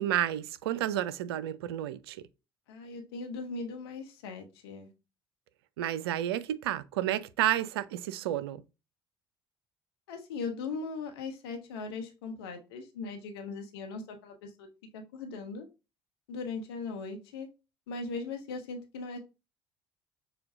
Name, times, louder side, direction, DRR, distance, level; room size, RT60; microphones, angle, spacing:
voice 1, 0.0-2.2 5.8-8.6, right 12 dB, 75° right, 0.4 m, -31 dB
voice 2, 2.7-4.9 10.1-14.7 14.9-15.7 16.3-17.5 17.9-19.2, left 4 dB, 75° left, 0.9 m, -39 dB
6.6 x 2.2 x 2.5 m
figure-of-eight pair, 55°, 13 cm